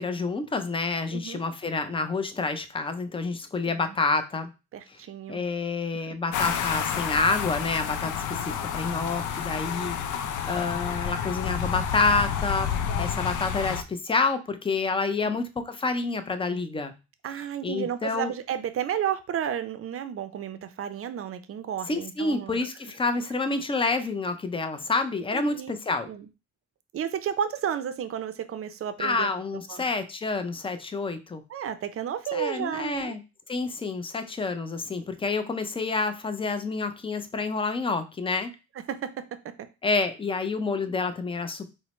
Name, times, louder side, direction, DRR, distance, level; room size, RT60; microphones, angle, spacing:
voice 1, 0.0-4.5 5.3-8.1 8.4-10.0 10.5-12.7 13.0-16.9 17.6-18.3 21.9-26.1 29.0-31.4 32.3-33.2 33.5-38.5 39.8-41.7, left 3 dB, 20° left, 9 dB, 0.5 m, -28 dB
voice 2, 1.1-1.4 3.6-4.0 4.7-5.4 6.1-6.2 15.2-15.4 17.2-22.6 25.3-25.7 26.1-26.3 26.9-29.3 29.7-29.9 31.5-33.1 38.9-39.2, right 9 dB, 50° right, 11 dB, 0.5 m, -32 dB
sound 1, 6.3-13.8, left 8 dB, 80° left, 0.5 m, -30 dB
4.3 x 2.1 x 3.0 m, 0.29 s
cardioid pair, 90°, 30 cm